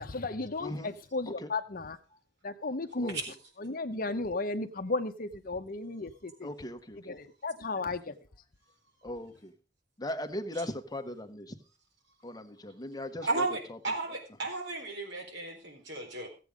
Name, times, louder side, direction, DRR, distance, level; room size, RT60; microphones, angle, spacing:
voice 1, 0.0-2.0 2.4-3.2 3.6-6.5 7.0-8.1, left 3 dB, 50° left, 0.9 m, -34 dB
voice 2, 6.4-7.0 9.0-9.5 10.0-11.5 12.2-13.4 13.7-13.8, left 1 dB, 20° left, 1.2 m, -38 dB
voice 3, 13.2-16.3, right 3 dB, 75° right, 4.3 m, -34 dB
15.0 x 8.5 x 5.1 m
head